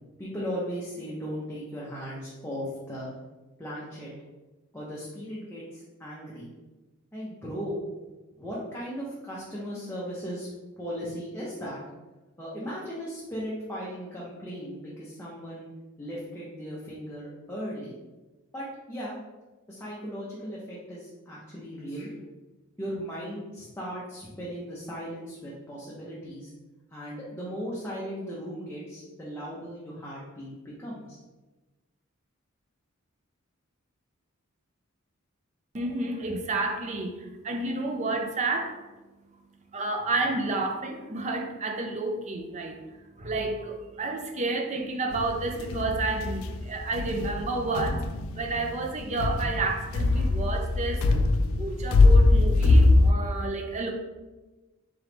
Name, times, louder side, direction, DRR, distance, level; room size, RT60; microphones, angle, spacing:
voice 1, 0.2-3.1 3.6-4.1 4.7-6.5 7.1-7.8 8.4-10.5 10.8-11.8 12.4-15.7 16.0-18.0 18.5-19.1 19.7-22.2 22.8-26.5 26.9-31.2, equal, 10° left, -7 dB, 0.6 m, -37 dB
voice 2, 35.7-38.8 39.7-42.8 43.2-48.0 48.4-51.2 51.6-53.9, right 2 dB, 35° right, 3 dB, 0.5 m, -30 dB
sound 1, 45.1-53.1, left 2 dB, 70° left, 0.3 m, -22 dB
3.7 x 3.1 x 3.4 m, 1.2 s
head